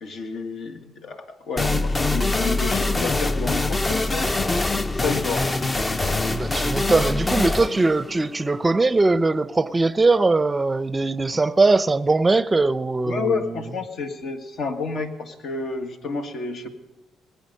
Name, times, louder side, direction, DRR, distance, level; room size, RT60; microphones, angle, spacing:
voice 1, 0.0-4.3 4.9-5.5 13.1-16.7, left 4 dB, 65° left, 1.6 m, -30 dB
sound 1, 1.6-9.0, left 2 dB, 25° left, 0.7 m, -24 dB
voice 2, 6.3-13.5, right 3 dB, 25° right, 0.6 m, -21 dB
20.0 x 9.5 x 6.5 m
supercardioid pair, 75°, 0 cm